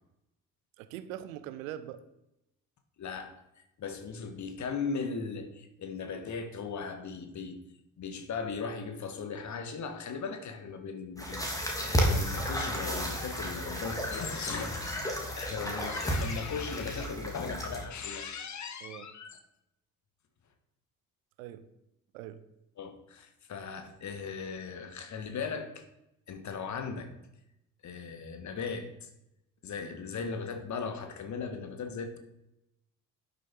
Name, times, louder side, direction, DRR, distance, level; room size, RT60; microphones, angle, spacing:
voice 1, 0.8-2.0 18.8-19.1 21.4-21.7 22.1-22.4, right 12 dB, 65° right, 13 dB, 0.9 m, -42 dB
voice 2, 3.0-3.3 3.8-7.6 8.0-19.4 22.8-25.8 26.3-27.1 27.8-29.1 29.6-32.2, left 5 dB, 40° left, 7 dB, 1.7 m, -38 dB
sound 1, 11.2-17.8, equal, 10° left, 2.9 m, -32 dB
12.0 x 7.1 x 4.7 m, 0.86 s
figure-of-eight pair, 50°, 43 cm